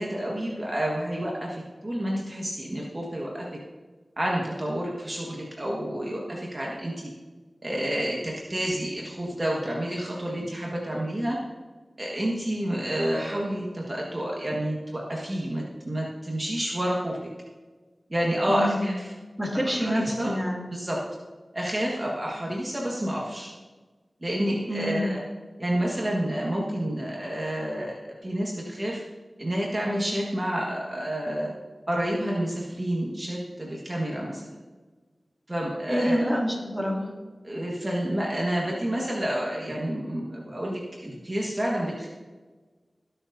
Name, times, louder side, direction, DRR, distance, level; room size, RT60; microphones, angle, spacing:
voice 1, 0.0-3.5 4.2-7.1 7.6-11.4 12.0-17.2 18.1-19.1 19.6-20.3 20.7-21.0 21.5-23.5 24.2-25.2 25.6-29.0 29.4-31.5 31.9-34.4 35.5-36.3 37.4-42.1, right 1 dB, 30° right, -3 dB, 1.5 m, -29 dB
voice 2, 18.5-18.9 19.4-20.7 24.7-25.1 35.9-37.1, equal, 5° right, -2 dB, 2.4 m, -27 dB
19.0 x 6.7 x 2.7 m, 1.4 s
wide cardioid pair, 70°, 0 cm